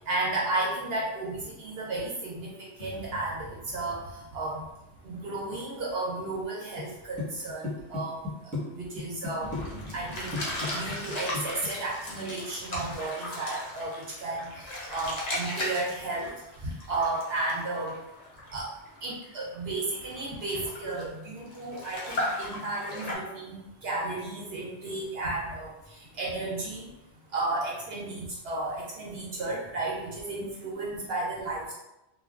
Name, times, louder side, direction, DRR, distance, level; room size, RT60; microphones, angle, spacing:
voice 1, 0.1-2.5 2.8-3.5 3.7-4.0 4.3-4.6 5.0-8.2 8.7-9.5 9.9-10.3 10.7-16.3 16.9-17.9 18.5-18.7 19.0-23.6 23.8-25.7 26.2-26.9 27.3-31.7, right 2 dB, 65° right, -4 dB, 0.8 m, -33 dB
sound 1, 2.8-6.4 9.4-13.2, equal, 85° left, 1.1 m, -47 dB
sound 2, 6.8-6.9 7.2-8.6 9.0-9.6 9.9-10.1 10.3-11.7, left 3 dB, 10° right, 0.9 m, -34 dB
sound 3, 9.5-23.2, left 1 dB, 45° left, 0.6 m, -36 dB
3.2 x 2.2 x 2.4 m, 0.93 s
omnidirectional pair, 1.2 m